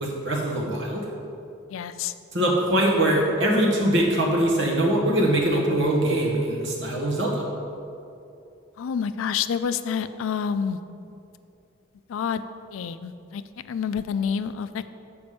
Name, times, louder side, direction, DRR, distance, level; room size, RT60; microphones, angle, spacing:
voice 1, 0.0-1.0 2.3-7.5, right 1 dB, 65° right, -2 dB, 1.4 m, -22 dB
voice 2, 1.7-2.1 8.8-10.8 12.1-12.4 12.7-13.4 13.7-14.9, left 7 dB, 80° left, 12 dB, 0.3 m, -28 dB
6.8 x 5.1 x 5.2 m, 2.6 s
head